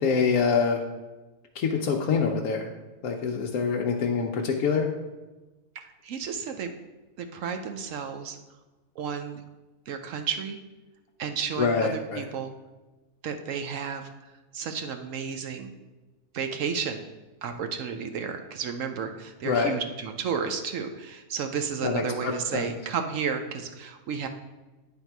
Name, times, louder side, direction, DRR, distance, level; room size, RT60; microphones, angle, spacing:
voice 1, 0.0-0.8 1.5-2.7 3.0-4.9 11.6-12.2 19.5-19.7 21.8-22.7, left 5 dB, 75° left, -1 dB, 1.1 m, -25 dB
voice 2, 5.8-6.7 7.2-8.4 9.0-9.4 9.9-10.6 11.2-12.5 13.2-14.1 14.5-15.7 16.3-17.0 17.4-24.3, right 6 dB, 70° right, 6 dB, 0.9 m, -32 dB
9.5 x 3.5 x 4.5 m, 1.2 s
omnidirectional pair, 1.6 m